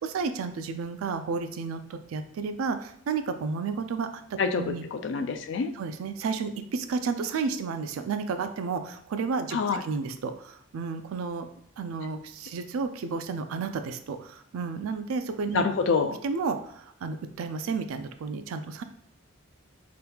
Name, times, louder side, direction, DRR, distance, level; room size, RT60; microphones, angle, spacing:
voice 1, 0.0-4.8 5.7-11.5 11.8-15.6 16.2-18.8, right 5 dB, 85° right, 9 dB, 0.4 m, -32 dB
voice 2, 4.4-5.7 9.5-9.8 15.5-16.2, left 4 dB, 60° left, 8 dB, 0.3 m, -26 dB
3.0 x 2.3 x 3.4 m, 0.72 s
head